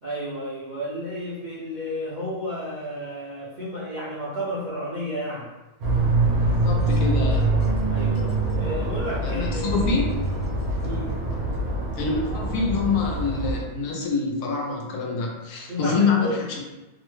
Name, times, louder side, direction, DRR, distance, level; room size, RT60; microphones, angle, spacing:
voice 1, 0.0-5.5 7.9-9.9 10.8-11.1 15.7-16.4, equal, 55° right, -10 dB, 0.5 m, -32 dB
sound 1, 5.8-13.6, right 2 dB, 75° right, 1.2 m, -24 dB
voice 2, 6.4-7.7 9.2-10.0 12.0-16.6, left 4 dB, 80° left, 0 dB, 1.1 m, -26 dB
2.9 x 2.1 x 3.1 m, 1.1 s
omnidirectional pair, 1.6 m